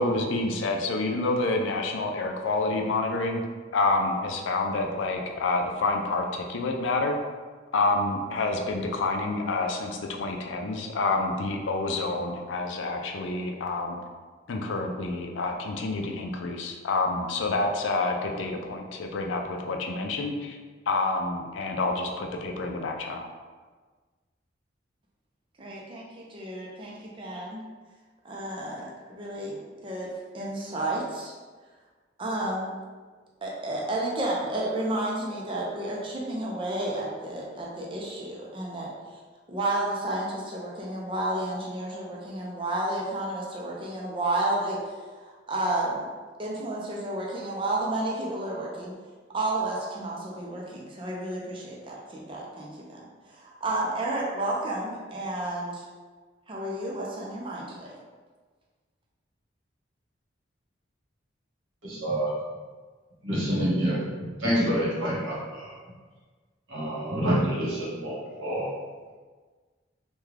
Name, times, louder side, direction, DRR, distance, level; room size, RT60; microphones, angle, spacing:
voice 1, 0.0-3.5 3.7-7.1 7.7-14.0 14.5-20.6 20.9-23.2, left 2 dB, 75° left, 3 dB, 0.4 m, -28 dB
voice 2, 25.6-27.6 28.2-31.3 32.2-32.7 33.4-39.2 39.5-46.0 46.4-48.9 49.3-53.0 53.3-55.8 56.5-57.9, right 1 dB, 25° right, -3 dB, 0.5 m, -31 dB
voice 3, 61.8-62.3 63.2-64.0 64.4-65.7 66.7-68.7, equal, 85° right, -7 dB, 1.2 m, -27 dB
3.5 x 2.2 x 3.2 m, 1.4 s
head